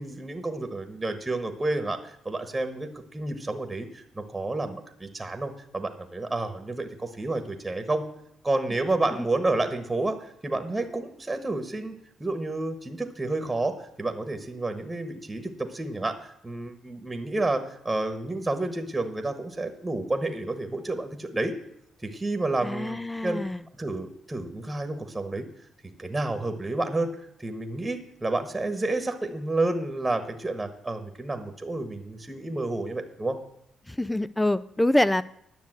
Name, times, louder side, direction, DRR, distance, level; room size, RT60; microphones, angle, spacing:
voice 1, 0.0-8.1 8.4-11.9 12.2-21.5 22.0-23.4 23.8-25.5 26.0-33.4, right 2 dB, 15° right, 8 dB, 1.3 m, -30 dB
voice 2, 22.6-23.6 33.9-35.2, left 1 dB, 10° left, 16 dB, 0.3 m, -25 dB
10.5 x 6.8 x 7.8 m, 0.74 s
cardioid pair, 90°, 0 cm